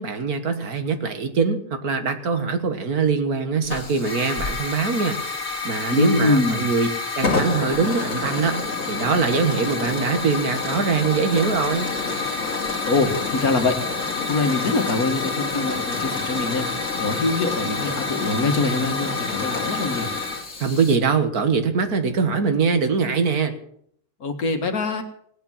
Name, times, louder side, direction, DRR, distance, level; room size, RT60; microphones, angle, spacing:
voice 1, 0.0-6.9 7.2-11.9 20.6-23.5, right 5 dB, 70° right, 7 dB, 2.0 m, -23 dB
Hiss / Fire, 3.6-21.0, left 4 dB, 45° left, 2.4 m, -28 dB
voice 2, 5.9-6.6 12.8-13.8 14.3-20.1 24.2-25.0, left 3 dB, 65° left, 6 dB, 2.1 m, -23 dB
18.0 x 8.8 x 7.3 m, 0.66 s
omnidirectional pair, 1.6 m